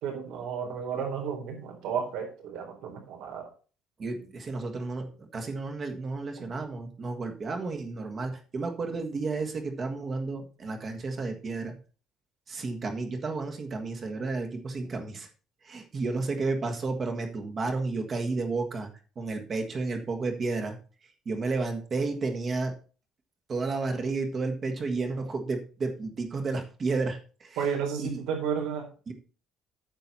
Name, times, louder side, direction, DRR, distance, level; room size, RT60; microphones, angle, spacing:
voice 1, 0.0-3.5 4.1-4.3 6.4-6.5 27.6-28.9, right 7 dB, 75° right, 2 dB, 4.0 m, -32 dB
voice 2, 4.0-11.7 12.5-15.3 15.7-18.9 19.2-20.8 21.2-22.7 23.5-27.6 28.0-28.2 29.1-29.2, right 3 dB, 25° right, 4 dB, 1.5 m, -32 dB
9.1 x 7.5 x 4.2 m, 0.36 s
cardioid pair, 175°, 0 cm